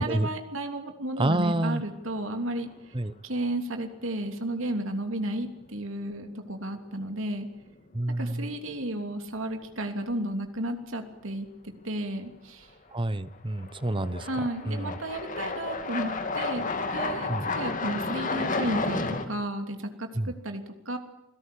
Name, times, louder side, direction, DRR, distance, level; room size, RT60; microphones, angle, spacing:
voice 1, 0.0-2.7 3.2-7.5 8.2-11.5 11.8-12.7 14.2-16.6 16.9-17.3 17.5-21.0, right 1 dB, 65° right, 6 dB, 3.0 m, -33 dB
voice 2, 1.2-1.8 2.9-3.1 7.9-8.5 12.9-14.3 14.7-15.0 17.3-17.5 20.2-20.3, right 1 dB, 25° right, 15 dB, 0.9 m, -28 dB
sound 1, 1.3-1.9 2.3-2.4 5.3-5.4 6.7-7.0 7.3-7.4 12.7-12.8 13.6-19.3, left 3 dB, 40° left, 2.5 m, -32 dB
27.5 x 17.5 x 8.6 m, 0.90 s
head